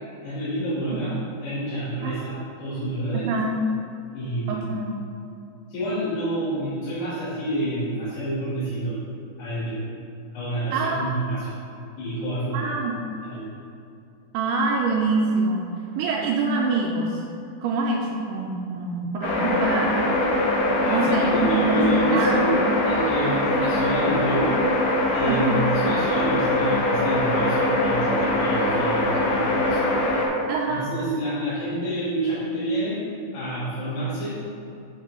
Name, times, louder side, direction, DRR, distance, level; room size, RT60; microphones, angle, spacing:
voice 1, 0.2-1.1 1.4-3.3 4.1-4.6 5.7-9.0 9.4-9.8 10.3-11.5 12.0-12.7 13.2-13.4 20.8-24.5 25.1-29.8 30.7-33.0 33.3-34.4, right 1 dB, 75° left, -14 dB, 3.8 m, -28 dB
voice 2, 3.1-3.6 4.5-4.9 10.7-11.1 12.5-13.0 14.3-17.2 17.6-20.1 20.8-21.8 22.1-22.6 25.2-25.6 30.5-30.9, right 3 dB, 85° right, -1 dB, 2.4 m, -25 dB
sound 1, 19.2-30.3, left 1 dB, 90° left, 3.5 m, -22 dB
8.8 x 3.6 x 5.4 m, 2.6 s
omnidirectional pair, 5.0 m